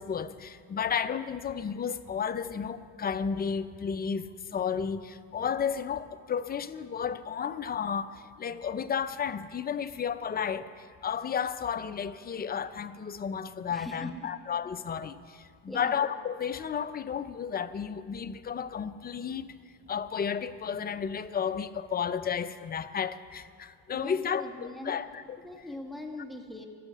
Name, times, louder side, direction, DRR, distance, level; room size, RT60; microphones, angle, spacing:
voice 1, 0.0-19.5 19.9-25.4, left 7 dB, 25° left, 12 dB, 0.6 m, -33 dB
voice 2, 13.7-14.3 15.7-15.9 23.9-25.0 25.4-26.7, left 1 dB, ahead, 2 dB, 1.5 m, -41 dB
13.0 x 7.1 x 9.2 m, 2.1 s
supercardioid pair, 100°, 36 cm